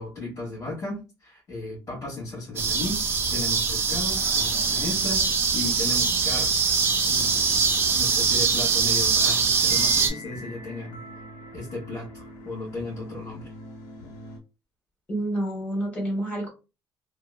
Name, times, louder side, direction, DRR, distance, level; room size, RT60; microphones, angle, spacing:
voice 1, 0.0-7.4 7.9-11.0 11.5-13.5, left 2 dB, 40° left, -6 dB, 1.5 m, -35 dB
sound 1, 2.6-10.1, right 5 dB, 30° right, 0.5 m, -23 dB
sound 2, 7.1-14.4, left 1 dB, 60° left, 0.7 m, -42 dB
voice 2, 15.1-16.5, right 1 dB, 20° left, 0 dB, 1.3 m, -28 dB
2.9 x 2.2 x 2.3 m, 0.29 s
cardioid pair, 160°, 8 cm